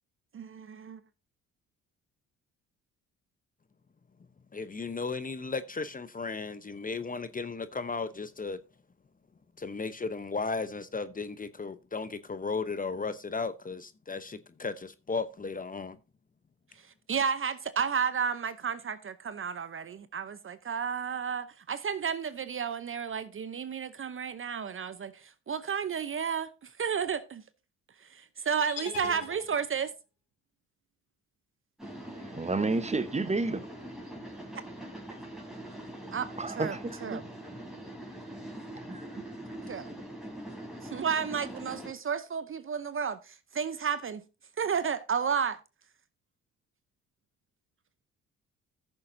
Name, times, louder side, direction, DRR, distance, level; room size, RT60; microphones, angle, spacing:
voice 1, 0.3-1.0 17.1-27.4 28.0-29.9 36.1-36.3 36.6-36.8 37.0-37.2 39.7-39.9 40.8-44.2 44.6-45.6, right 6 dB, 40° right, 0.7 m, -32 dB
voice 2, 4.5-8.6 9.6-16.0, left 4 dB, 25° left, 0.8 m, -35 dB
sound 1, 28.7-30.0, left 7 dB, 80° left, 2.7 m, -42 dB
sound 2, 31.8-41.9, right 1 dB, ahead, 3.8 m, -43 dB
voice 3, 32.2-33.7 36.4-37.2 38.7-39.2, right 3 dB, 20° right, 1.1 m, -31 dB
14.5 x 6.8 x 2.7 m
hypercardioid pair, 55°, 34 cm